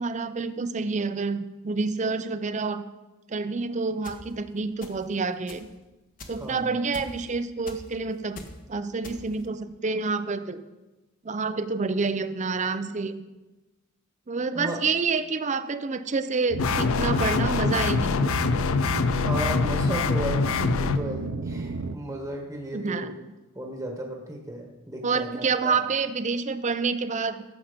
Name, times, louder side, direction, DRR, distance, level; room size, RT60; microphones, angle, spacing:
voice 1, 0.0-2.8 3.3-5.7 6.3-8.4 8.7-10.6 11.2-13.2 14.3-18.3 22.7-23.1 25.0-27.4, right 4 dB, 35° right, 11 dB, 0.6 m, -28 dB
sound 1, 4.0-4.2 4.8-5.1 5.5-5.7 6.2-6.5 6.9-7.3 7.7-7.9 8.4-8.6 9.0-9.5, left 2 dB, 40° left, 1.2 m, -42 dB
voice 2, 6.3-6.8 14.5-14.8 19.1-23.2 23.5-25.8, equal, 10° right, 1 dB, 1.3 m, -34 dB
sound 2, 16.5-22.0, right 3 dB, 75° right, 0.6 m, -33 dB
sound 3, 16.6-21.0, left 5 dB, 70° left, 0.5 m, -24 dB
15.0 x 7.3 x 5.1 m, 1.1 s
head